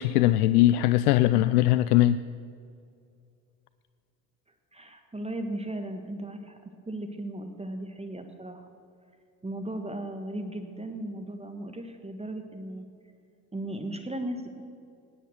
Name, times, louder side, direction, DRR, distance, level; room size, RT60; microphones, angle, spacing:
voice 1, 0.0-2.2, left 14 dB, 70° left, 14 dB, 0.5 m, -21 dB
voice 2, 4.7-8.6 9.4-12.8 13.5-14.6, right 1 dB, 10° right, 6 dB, 1.5 m, -36 dB
18.5 x 10.0 x 6.4 m, 2.4 s
figure-of-eight pair, 55°, 48 cm